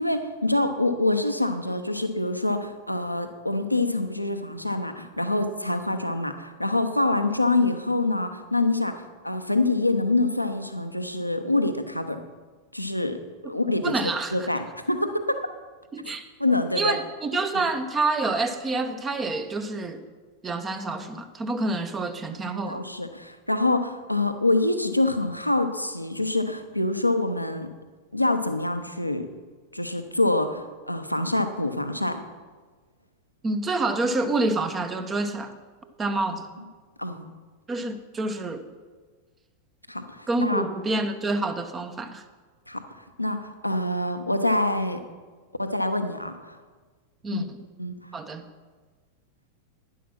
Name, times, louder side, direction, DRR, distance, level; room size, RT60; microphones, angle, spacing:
voice 1, 0.0-8.9 9.2-12.2 12.7-13.2 13.4-15.4 16.4-17.0 17.5-17.6 22.7-27.7 28.1-29.3 29.7-32.2 37.0-37.3 39.9-40.7 42.7-42.8 43.2-45.0 45.6-46.6 47.3-47.4 47.8-47.9, left 2 dB, 90° left, 8 dB, 0.8 m, -25 dB
voice 2, 13.8-14.5 15.9-16.2 16.7-20.0 20.4-22.9 33.4-35.5 36.0-36.5 37.7-38.7 40.3-42.2 47.2-47.6 48.1-48.5, right 2 dB, 20° right, 9 dB, 0.9 m, -27 dB
11.0 x 10.0 x 6.0 m, 1.4 s
figure-of-eight pair, 90°, 0 cm